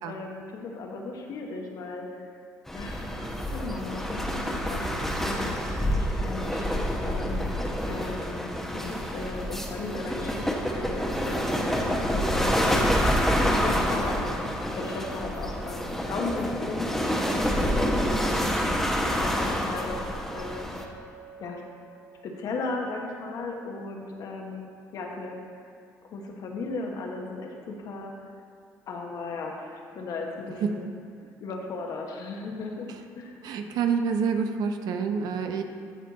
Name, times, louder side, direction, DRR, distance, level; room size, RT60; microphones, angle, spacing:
voice 1, 0.0-2.3 2.7-14.4 14.8-18.7 19.1-20.0 20.3-20.7 21.4-21.6 22.2-25.4 26.0-28.1 28.9-30.9 31.4-32.9 33.1-33.4, left 3 dB, 65° left, 1 dB, 1.2 m, -36 dB
sound 1, 2.7-20.8, equal, 5° left, 1.0 m, -27 dB
Chink clink, 20.8-25.2, right 3 dB, 35° left, 1.7 m, -52 dB
voice 2, 33.4-35.6, right 6 dB, 75° right, 6 dB, 0.7 m, -27 dB
13.0 x 4.5 x 4.2 m, 2.4 s
cardioid pair, 85°, 7 cm